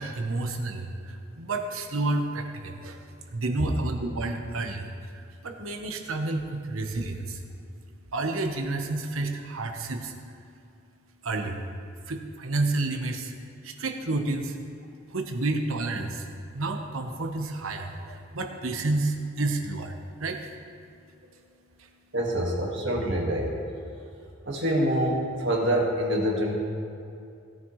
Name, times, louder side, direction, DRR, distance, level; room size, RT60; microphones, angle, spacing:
voice 1, 0.0-7.4 8.1-10.4 11.2-11.6 12.1-14.6 15.1-16.3 16.5-20.5 21.8-21.9, right 2 dB, 85° right, 4 dB, 1.1 m, -30 dB
voice 2, 22.1-23.6 24.5-26.5, right 1 dB, 60° right, -1 dB, 1.9 m, -26 dB
17.0 x 9.3 x 3.2 m, 2.4 s
head